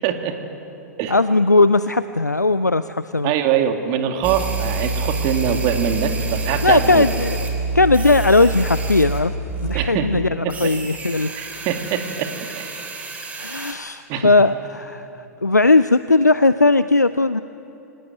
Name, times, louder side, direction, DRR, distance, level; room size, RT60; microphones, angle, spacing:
voice 1, 0.0-0.3 1.0-1.1 3.2-7.0 9.7-10.1 11.4-12.3 12.5-12.9 14.1-14.3, right 8 dB, 40° right, 5 dB, 2.4 m, -23 dB
voice 2, 1.1-3.3 6.6-7.4 7.7-9.4 9.6-11.3 13.4-17.4, left 3 dB, 90° left, 14 dB, 0.5 m, -17 dB
sound 1, 4.2-9.2 9.5-9.9 10.5-13.7, right 3 dB, 15° right, 4.2 m, -27 dB
24.0 x 18.5 x 9.7 m, 3.0 s
figure-of-eight pair, 100°, 9 cm